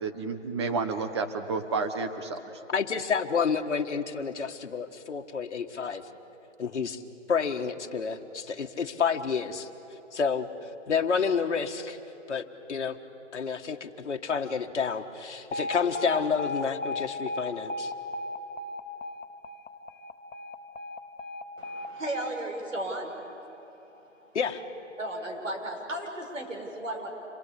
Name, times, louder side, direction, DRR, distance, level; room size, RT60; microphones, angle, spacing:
voice 1, 0.0-2.4, right 4 dB, 20° right, 7 dB, 1.1 m, -30 dB
voice 2, 2.7-6.0 6.6-7.0 7.3-9.7 10.1-10.5 10.9-12.0 12.3-13.0 13.3-17.9 24.3-24.6, left 6 dB, 65° left, 4 dB, 1.8 m, -29 dB
Alarm, 15.5-23.6, left 2 dB, 90° left, 1.2 m, -36 dB
voice 3, 21.6-23.1 25.0-27.1, right 1 dB, 90° right, 2 dB, 5.9 m, -35 dB
27.5 x 22.0 x 8.3 m, 2.9 s
hypercardioid pair, 165°, 37 cm